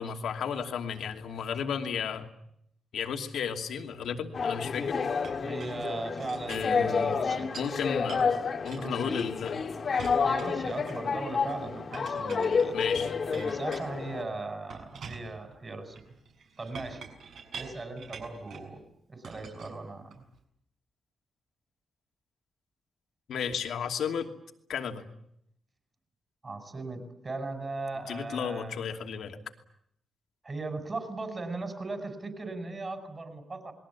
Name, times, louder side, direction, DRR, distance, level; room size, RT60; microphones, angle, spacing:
voice 1, 0.0-2.3 2.9-5.0 6.5-7.1 7.6-9.6 12.7-13.1 23.3-24.3 24.7-25.0 28.1-29.4, left 7 dB, 70° left, 4 dB, 2.7 m, -33 dB
sound 1, 4.3-14.2, left 5 dB, 35° left, 1.9 m, -30 dB
Chink clink, 5.2-7.8 8.1-9.6 10.0-11.2 11.9-14.2 14.7-18.7 19.2-20.4, right 5 dB, 60° right, 6.9 m, -47 dB
voice 2, 5.4-7.5 8.8-9.2 10.2-12.8 13.3-16.0 16.6-17.1 17.5-18.8 19.1-20.2 26.4-28.7 30.4-33.7, right 3 dB, 25° right, 7 dB, 5.4 m, -38 dB
28.5 x 22.0 x 8.4 m, 0.74 s
wide cardioid pair, 175°, 0 cm